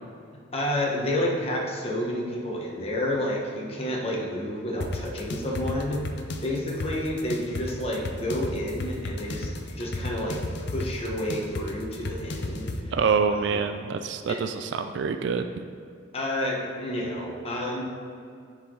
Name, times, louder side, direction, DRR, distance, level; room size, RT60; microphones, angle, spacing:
voice 1, 0.5-6.0 6.4-10.4 10.7-12.9 13.3-13.6 14.3-14.4 16.1-17.8, left 1 dB, 30° left, -3 dB, 1.1 m, -30 dB
sound 1, 4.8-12.8, left 2 dB, 55° left, 0.6 m, -33 dB
voice 2, 12.9-15.7, right 5 dB, 65° right, 8 dB, 0.3 m, -26 dB
10.0 x 4.8 x 3.9 m, 2.4 s
head